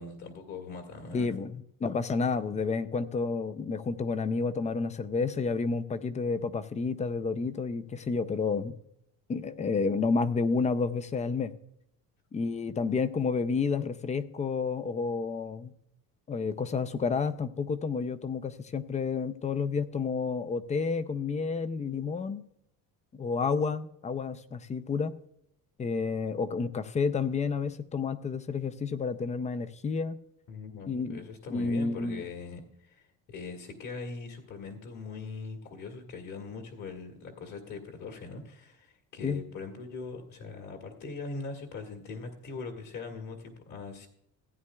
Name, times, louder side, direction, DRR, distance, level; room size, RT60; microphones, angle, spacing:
voice 1, 0.0-1.3 30.5-44.1, left 4 dB, 50° left, 3 dB, 1.7 m, -41 dB
voice 2, 1.1-8.7 9.3-11.5 12.3-15.7 16.3-22.4 23.2-25.1 25.8-30.2 30.9-31.2 31.5-32.2 39.2-39.4, left 4 dB, 20° left, 13 dB, 0.4 m, -30 dB
16.0 x 9.5 x 2.3 m, 0.74 s
cardioid pair, 165°, 36 cm